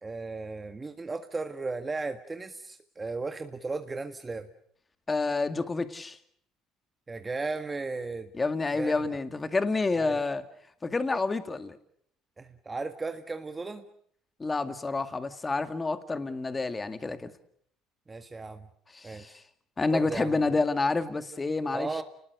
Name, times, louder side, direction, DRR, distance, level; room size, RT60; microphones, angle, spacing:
voice 1, 0.0-4.5 7.1-8.3 8.7-8.9 9.9-10.2 12.4-13.8 18.1-18.7 19.0-19.4 19.9-20.4 21.7-22.0, right 3 dB, 20° right, 7 dB, 1.7 m, -35 dB
voice 2, 5.1-6.2 8.3-10.4 10.8-11.8 14.4-17.3 18.9-19.4 19.8-21.9, left 3 dB, 20° left, 9 dB, 2.1 m, -29 dB
29.0 x 20.5 x 6.7 m, 0.66 s
supercardioid pair, 100°, 0 cm